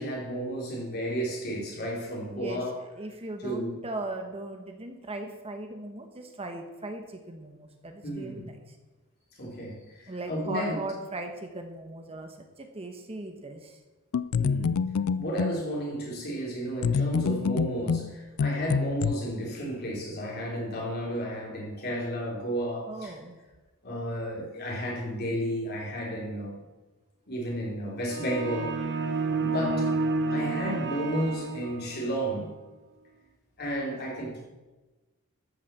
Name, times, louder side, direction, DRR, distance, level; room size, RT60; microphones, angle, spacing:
voice 1, 0.0-2.7 3.4-3.8 8.0-8.4 9.4-10.8 14.4-14.7 15.2-23.2 23.8-26.6 27.3-28.7 29.1-29.9 30.3-32.5 33.6-34.5, equal, 50° left, -2 dB, 3.8 m, -32 dB
voice 2, 2.3-8.7 10.1-13.8 22.9-23.4, right 2 dB, 30° right, 5 dB, 1.2 m, -38 dB
sound 1, 14.1-15.6 16.8-19.1, left 5 dB, 75° left, 0.4 m, -27 dB
sound 2, 28.1-32.1, right 3 dB, 55° right, 0.9 m, -30 dB
13.5 x 6.5 x 7.0 m, 1.1 s
head